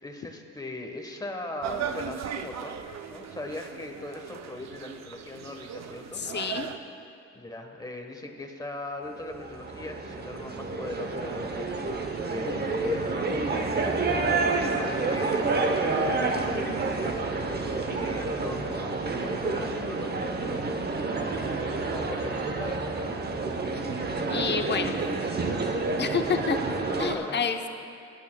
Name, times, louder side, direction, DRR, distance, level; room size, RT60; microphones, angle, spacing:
voice 1, 0.0-2.8 3.1-6.2 7.3-11.9 12.3-21.4 21.9-22.9 27.0-27.4, left 2 dB, 10° left, 3 dB, 1.2 m, -39 dB
sound 1, 1.6-6.8, right 8 dB, 60° right, 0.6 m, -38 dB
voice 2, 6.1-6.7 24.3-25.0 26.0-26.6 27.0-27.7, left 6 dB, 35° left, 6 dB, 0.7 m, -28 dB
sound 2, 9.2-27.2, right 3 dB, 35° right, 0.8 m, -29 dB
22.0 x 8.6 x 2.3 m, 2.5 s
cardioid pair, 90°, 30 cm